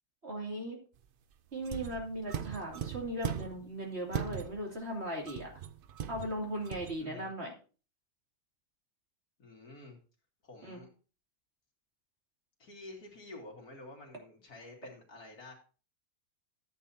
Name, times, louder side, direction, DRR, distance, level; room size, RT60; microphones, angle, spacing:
voice 1, 0.2-0.8 1.5-5.5 6.1-7.5 10.6-10.8, right 1 dB, 40° right, -1 dB, 3.1 m, -38 dB
sound 1, 1.6-3.7 4.1-4.8 5.2-7.0, right 8 dB, 85° right, 0.4 m, -39 dB
voice 2, 7.0-7.3 9.4-10.0 10.4-10.9 12.6-15.5, left 2 dB, 75° left, 0 dB, 3.0 m, -49 dB
13.5 x 8.5 x 2.8 m, 0.36 s
omnidirectional pair, 1.7 m